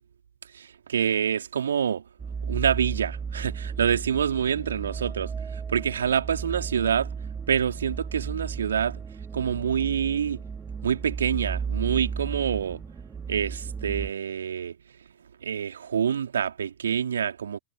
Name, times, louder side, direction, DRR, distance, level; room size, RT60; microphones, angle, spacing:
voice 1, 0.5-2.0 2.4-7.1 7.5-9.0 9.3-10.4 10.8-12.8 13.3-14.7 15.4-17.6, right 8 dB, 70° right, 3.2 m, -26 dB
sound 1, 2.2-14.1, right 6 dB, 15° right, 2.0 m, -34 dB
figure-of-eight pair, 90°, 0 cm